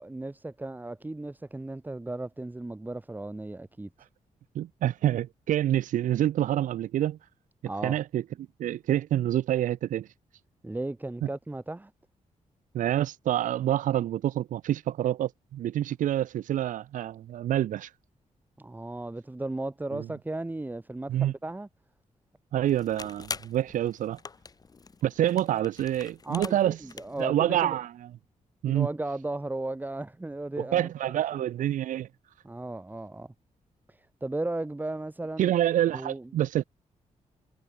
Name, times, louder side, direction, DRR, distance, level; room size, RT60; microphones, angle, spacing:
voice 1, 0.0-3.9 7.7-8.0 10.6-11.9 18.6-21.7 26.2-27.8 28.6-31.5 32.4-33.3 33.9-35.5 35.9-36.3, right 2 dB, 15° right, 2.5 m, -35 dB
voice 2, 4.5-7.2 7.8-8.2 8.6-10.1 12.7-17.9 19.9-20.0 21.1-21.3 22.5-24.2 25.0-26.9 27.2-27.9 28.6-28.9 30.6-32.1 35.4-36.6, right 12 dB, 80° right, 0.4 m, -27 dB
sound 1, 22.6-27.3, left 4 dB, 30° left, 0.8 m, -43 dB
wide cardioid pair, 125°, 13 cm